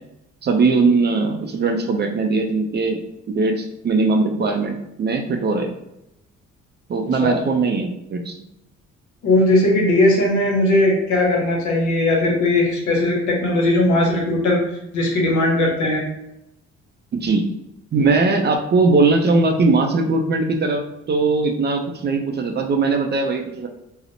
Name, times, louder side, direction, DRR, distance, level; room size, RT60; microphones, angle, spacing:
voice 1, 0.4-3.0 3.3-5.7 6.9-8.4 17.1-17.4 17.9-23.7, right 3 dB, 35° right, 3 dB, 0.4 m, -20 dB
voice 2, 9.2-14.6 14.9-16.1, left 1 dB, 75° left, -1 dB, 0.9 m, -18 dB
2.8 x 2.0 x 2.6 m, 0.85 s
cardioid pair, 90°, 30 cm